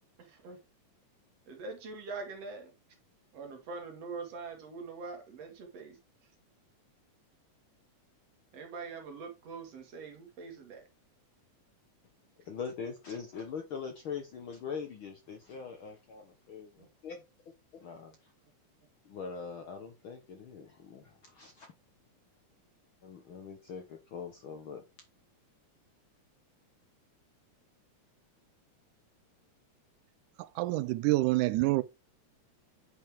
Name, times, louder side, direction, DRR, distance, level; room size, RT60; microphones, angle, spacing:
voice 1, 0.2-0.6 1.5-2.7 3.3-6.0 8.5-10.8 16.8-16.9, right 4 dB, 55° right, 2.7 m, -43 dB
voice 2, 12.4-17.2 17.8-18.3 19.0-21.7 23.0-24.8, left 6 dB, 65° left, 1.3 m, -42 dB
voice 3, 30.4-31.8, right 20 dB, 85° right, 2.1 m, -27 dB
9.1 x 5.3 x 3.5 m
omnidirectional pair, 3.5 m